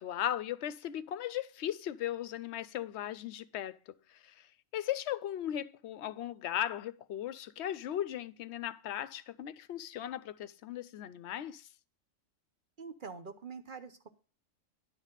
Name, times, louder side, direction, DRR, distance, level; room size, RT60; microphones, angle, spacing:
voice 1, 0.0-4.5 4.7-11.7, left 11 dB, 65° left, 0.8 m, -37 dB
voice 2, 12.8-14.1, right 5 dB, 45° right, 0.9 m, -45 dB
11.0 x 4.1 x 7.3 m
omnidirectional pair, 1.3 m